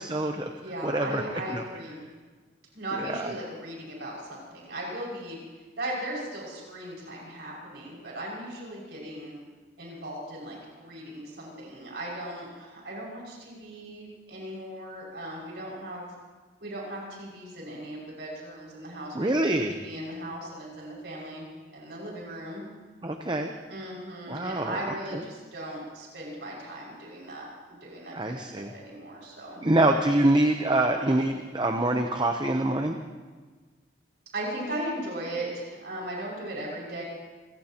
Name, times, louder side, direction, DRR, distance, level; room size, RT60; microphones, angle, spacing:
voice 1, 0.0-0.5 0.8-1.2 1.5-1.6 3.0-3.3 19.1-19.8 23.0-23.5 24.3-25.2 28.1-28.7 29.6-33.0, right 1 dB, 25° right, 5 dB, 0.7 m, -25 dB
voice 2, 0.6-2.1 2.7-5.4 5.8-9.3 9.8-16.1 16.6-22.6 23.7-29.6 34.3-37.0, right 1 dB, 65° right, -4 dB, 6.0 m, -37 dB
28.5 x 16.5 x 2.9 m, 1.4 s
head